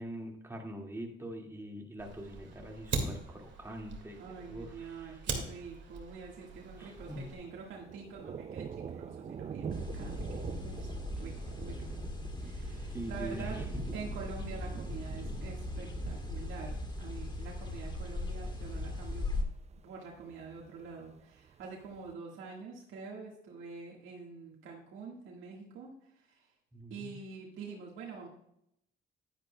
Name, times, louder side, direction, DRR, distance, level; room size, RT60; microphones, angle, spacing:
voice 1, 0.0-4.2 4.5-5.2 6.8-7.3 12.4-12.5 12.9-13.6 26.7-27.2, equal, 10° right, 1 dB, 2.0 m, -43 dB
Fire, 2.0-7.4, right 4 dB, 65° right, 2.0 m, -41 dB
voice 2, 4.2-10.9 11.2-12.0 12.4-13.7 13.9-19.3 19.8-26.5 26.9-28.3, right 5 dB, 85° right, -2 dB, 1.7 m, -46 dB
Thunder, 6.6-22.1, right 7 dB, 35° right, 0.4 m, -46 dB
sound 1, 9.7-19.4, left 2 dB, 25° left, 1.4 m, -39 dB
10.5 x 10.0 x 2.2 m, 0.76 s
cardioid pair, 90°, 20 cm